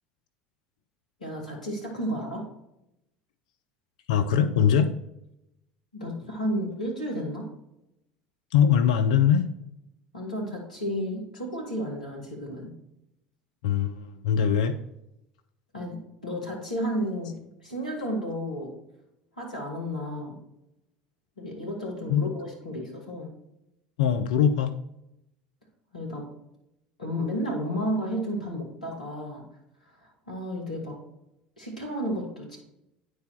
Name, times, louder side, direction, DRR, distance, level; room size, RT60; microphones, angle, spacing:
voice 1, 1.2-2.5 5.9-7.5 10.1-12.7 15.7-18.7 19.3-20.4 21.4-23.3 25.9-26.3 27.0-29.5 29.8-31.0 31.6-32.6, equal, 85° left, -3 dB, 2.5 m, -32 dB
voice 2, 4.1-4.9 8.5-9.5 13.6-14.8 22.1-22.2 24.0-24.7, left 8 dB, 65° left, 8 dB, 0.5 m, -22 dB
9.4 x 4.7 x 4.4 m, 0.83 s
figure-of-eight pair, 70°, 4 cm